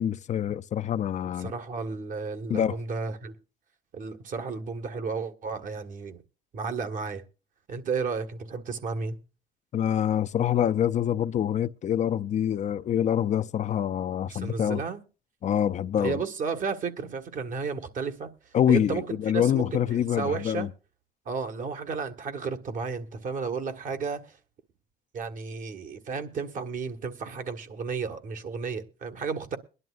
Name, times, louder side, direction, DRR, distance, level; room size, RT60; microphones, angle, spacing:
voice 1, 0.0-1.5 2.5-2.8 9.7-14.8 15.4-16.2 18.5-20.7, left 10 dB, 45° left, 0.5 m, -26 dB
voice 2, 1.4-3.3 3.9-6.2 6.5-7.2 7.7-9.2 14.3-15.0 15.9-20.7 21.2-24.4 25.1-29.6, right 5 dB, 50° right, 1.7 m, -33 dB
22.5 x 11.0 x 2.5 m
cardioid pair, 110°, 17 cm